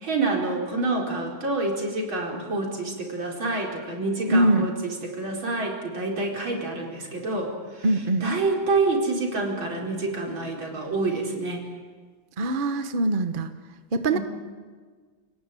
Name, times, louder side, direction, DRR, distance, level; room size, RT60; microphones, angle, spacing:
voice 1, 0.0-7.9 8.2-11.6 14.1-14.2, right 3 dB, 80° right, 0 dB, 5.2 m, -27 dB
voice 2, 4.3-4.7 7.8-8.3 12.4-13.5 13.9-14.2, right 2 dB, 30° right, 8 dB, 1.2 m, -22 dB
28.5 x 18.5 x 9.1 m, 1.5 s
omnidirectional pair, 2.1 m